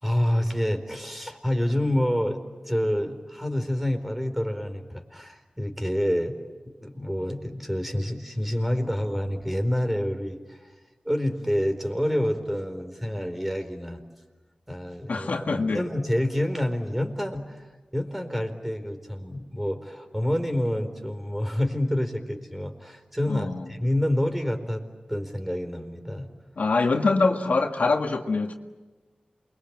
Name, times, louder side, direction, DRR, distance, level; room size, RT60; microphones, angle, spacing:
voice 1, 0.0-6.4 6.6-10.6 11.0-14.0 14.7-15.3 15.7-17.6 17.9-24.8 25.1-26.3, equal, 5° right, 6 dB, 4.3 m, -28 dB
voice 2, 15.1-15.8 23.2-23.7 26.6-28.5, left 3 dB, 80° left, 4 dB, 1.8 m, -24 dB
28.0 x 23.0 x 8.8 m, 1.2 s
wide cardioid pair, 55°, 3 cm